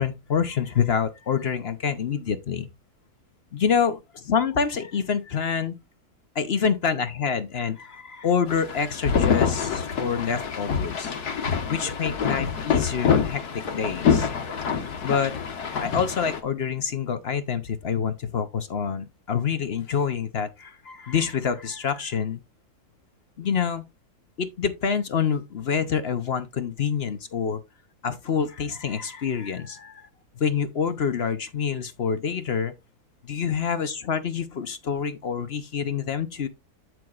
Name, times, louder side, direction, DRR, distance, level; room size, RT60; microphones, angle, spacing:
voice 1, 0.0-2.7 3.5-5.7 6.3-11.1 11.7-13.4 13.7-14.3 15.0-15.3 15.8-22.4 23.4-23.8 24.4-27.6 28.0-30.1 30.4-32.7 33.2-36.5, left 6 dB, 50° left, 0.9 m, -27 dB
sound 1, 8.5-16.4, left 6 dB, 75° left, 1.8 m, -26 dB
8.4 x 7.7 x 2.4 m
omnidirectional pair, 1.7 m